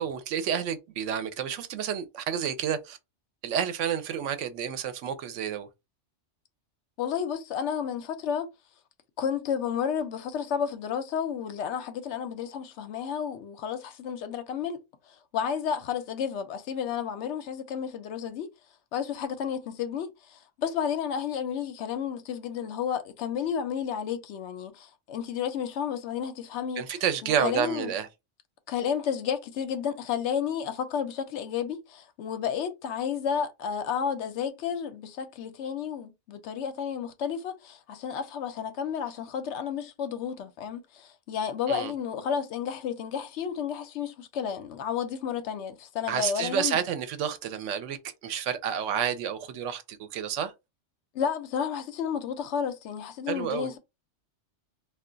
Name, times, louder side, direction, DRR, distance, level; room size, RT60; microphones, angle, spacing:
voice 1, 0.0-3.0 3.4-5.7 26.8-28.1 41.7-41.9 46.1-48.0 48.2-50.5 53.3-53.7, right 8 dB, 90° right, 0.9 m, -30 dB
voice 2, 7.0-8.5 9.2-18.5 18.9-27.0 27.2-27.9 28.7-46.8 51.1-53.8, left 7 dB, 75° left, 0.8 m, -32 dB
2.3 x 2.2 x 3.7 m
omnidirectional pair, 1.2 m